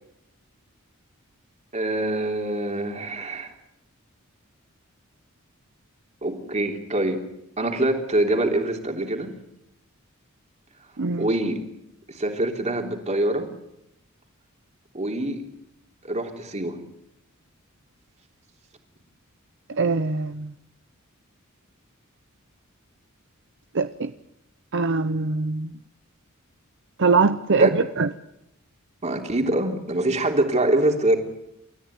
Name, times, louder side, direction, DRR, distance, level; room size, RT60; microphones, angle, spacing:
voice 1, 1.7-3.5 6.2-7.3 7.6-9.3 11.2-11.6 12.1-13.5 14.9-15.4 16.0-16.8 27.6-27.7 29.0-31.2, right 1 dB, 35° right, 3.4 m, -24 dB
voice 2, 11.0-11.3 19.7-20.5 23.7-24.1 24.7-25.7 27.0-28.1, right 4 dB, 60° right, 0.8 m, -22 dB
29.5 x 14.0 x 9.5 m
head